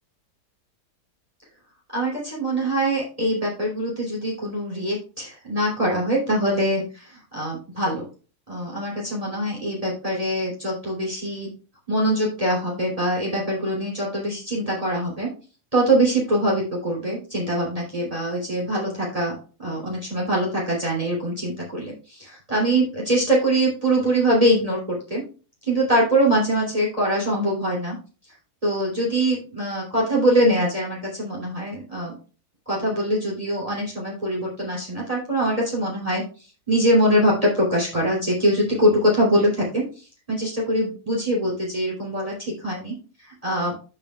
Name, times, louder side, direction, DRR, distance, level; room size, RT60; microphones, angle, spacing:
voice 1, 1.9-8.1 8.5-11.5 11.9-15.3 15.7-25.2 25.6-27.9 28.6-32.2 32.7-36.2 36.7-43.7, right 1 dB, 20° right, -4 dB, 3.2 m, -23 dB
14.5 x 5.5 x 2.3 m, 0.35 s
omnidirectional pair, 1.7 m